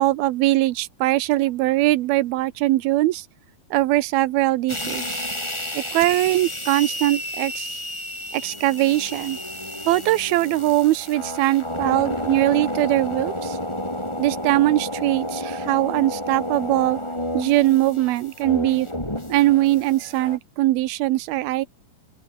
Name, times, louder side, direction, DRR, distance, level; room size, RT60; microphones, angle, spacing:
voice 1, 0.0-3.3 3.7-5.2 5.7-7.8 8.3-9.4 9.9-13.6 14.2-17.0 17.3-18.9 19.3-21.7, right 16 dB, 80° right, 2.9 m, -21 dB
sound 1, 4.7-20.4, left 1 dB, 5° left, 5.7 m, -31 dB
open air
omnidirectional pair, 4.4 m